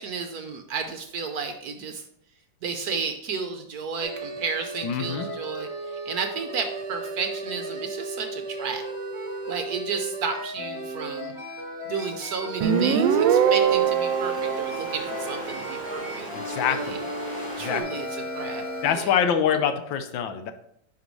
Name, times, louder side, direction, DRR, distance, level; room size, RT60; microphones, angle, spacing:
voice 1, 0.0-2.0 2.6-8.8 9.5-11.3 11.8-17.0 17.6-18.6 18.9-19.2, right 5 dB, 65° right, 6 dB, 1.0 m, -33 dB
sound 1, 4.0-19.0, right 1 dB, 20° right, 1.1 m, -35 dB
voice 2, 4.8-5.3 16.3-17.0 17.6-18.0 18.8-20.5, left 8 dB, 80° left, 9 dB, 1.4 m, -25 dB
sound 2, 12.6-17.8, left 1 dB, 25° left, 1.6 m, -39 dB
Guitar, 12.6-16.1, right 8 dB, 80° right, 1.3 m, -23 dB
10.5 x 5.1 x 3.1 m, 0.71 s
omnidirectional pair, 2.1 m